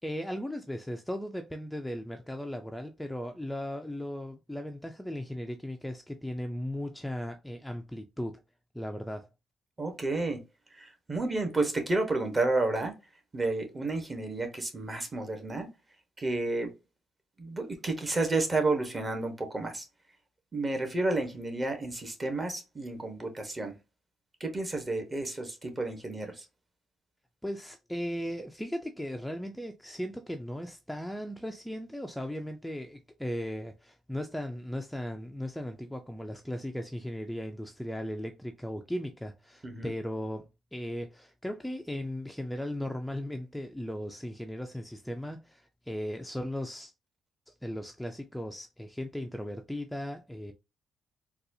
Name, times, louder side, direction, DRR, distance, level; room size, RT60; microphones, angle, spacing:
voice 1, 0.0-8.4 8.7-9.3 27.4-46.9 47.5-50.5, equal, 5° left, 0.4 m, -37 dB
voice 2, 9.8-10.4 10.7-12.9 13.3-15.7 16.2-16.7 17.4-19.8 20.5-23.7 24.4-26.4 39.6-39.9, right 2 dB, 25° right, 1.1 m, -31 dB
4.0 x 2.3 x 2.6 m
cardioid pair, 90°, 0 cm